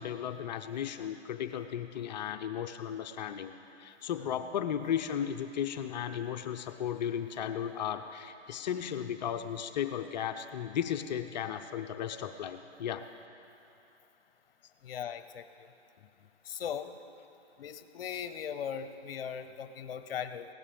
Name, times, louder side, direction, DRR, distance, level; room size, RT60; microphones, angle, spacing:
voice 1, 0.0-3.5 3.8-13.1, left 9 dB, 40° left, 8 dB, 0.6 m, -35 dB
voice 2, 14.8-15.7 16.4-16.9 17.6-20.5, left 8 dB, 60° left, 10 dB, 0.9 m, -39 dB
19.0 x 17.0 x 3.5 m, 2.8 s
hypercardioid pair, 140°, 33 cm